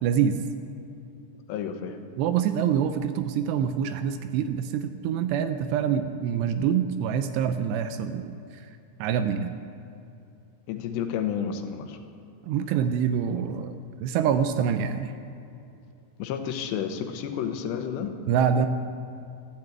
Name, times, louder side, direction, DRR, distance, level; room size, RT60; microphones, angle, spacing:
voice 1, 0.0-0.4 2.2-8.4 9.0-9.5 12.4-15.1 18.3-18.7, right 8 dB, 80° right, 9 dB, 2.7 m, -25 dB
voice 2, 1.5-2.0 10.7-12.0 16.2-18.1, left 8 dB, 80° left, 7 dB, 3.2 m, -31 dB
13.5 x 12.0 x 8.1 m, 2.6 s
omnidirectional pair, 5.0 m